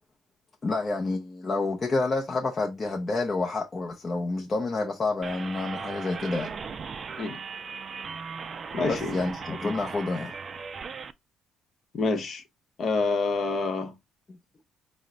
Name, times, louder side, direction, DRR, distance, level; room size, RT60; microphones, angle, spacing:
voice 1, 0.6-6.5 8.8-10.4, left 3 dB, 25° left, 0.6 m, -29 dB
sound 1, 5.2-11.1, right 5 dB, 35° right, 0.3 m, -38 dB
voice 2, 8.7-9.1 11.9-12.4 12.8-13.9, left 3 dB, 45° left, 0.9 m, -27 dB
5.5 x 2.1 x 3.8 m
cardioid pair, 145°, 0 cm